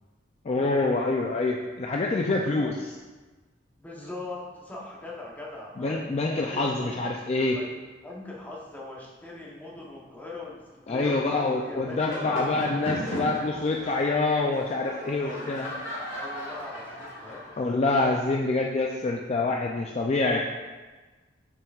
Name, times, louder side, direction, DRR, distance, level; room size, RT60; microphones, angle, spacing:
voice 1, 0.4-2.8 5.8-7.6 10.9-15.7 17.6-20.4, left 3 dB, 35° left, 0 dB, 0.3 m, -26 dB
voice 2, 2.2-2.7 3.8-6.0 6.3-6.9 7.5-7.7 8.0-13.1 15.1-15.5 16.1-17.5, left 2 dB, 10° left, -4 dB, 1.0 m, -41 dB
sound 1, 11.9-18.3, left 1 dB, 80° left, 1.7 m, -37 dB
6.8 x 5.8 x 2.4 m, 1.3 s
head